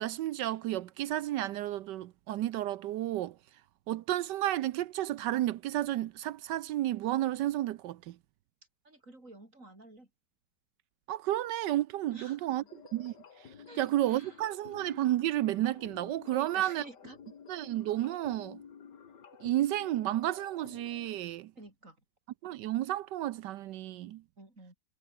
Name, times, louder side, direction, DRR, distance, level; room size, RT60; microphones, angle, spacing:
voice 1, 0.0-3.4 3.9-8.2 11.1-12.6 12.9-13.1 13.8-16.8 17.5-18.6 19.4-21.5 22.4-24.2, right 14 dB, 80° right, 1.3 m, -32 dB
voice 2, 8.8-10.1 12.1-12.7 13.7-14.8 16.3-17.2 21.6-22.0 24.4-24.7, right 2 dB, 45° right, 7.1 m, -51 dB
sound 1, 12.7-21.2, left 7 dB, 80° left, 2.4 m, -52 dB
omnidirectional pair, 1.9 m